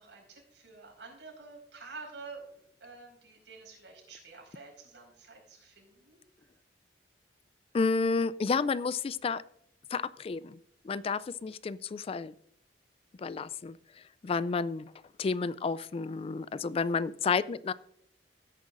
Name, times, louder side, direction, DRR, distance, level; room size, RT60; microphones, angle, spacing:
voice 1, 0.0-6.2, right 4 dB, 90° right, 0 dB, 5.0 m, -49 dB
voice 2, 7.7-9.4 9.9-10.6 10.8-12.3 13.2-14.9 15.2-17.7, left 4 dB, 35° left, 17 dB, 0.3 m, -31 dB
16.5 x 9.4 x 2.5 m, 0.71 s
head